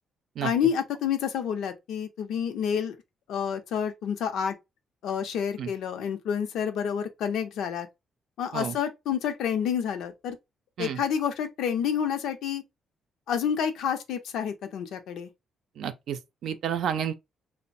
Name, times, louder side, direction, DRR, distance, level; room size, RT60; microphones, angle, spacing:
voice 1, 0.4-3.0 3.3-4.5 5.0-7.9 8.4-10.4 10.8-12.6 13.3-15.3, left 8 dB, 80° left, 0.6 m, -29 dB
voice 2, 15.8-17.1, right 8 dB, 75° right, 0.5 m, -30 dB
3.1 x 2.1 x 2.6 m
cardioid pair, 90°, 0 cm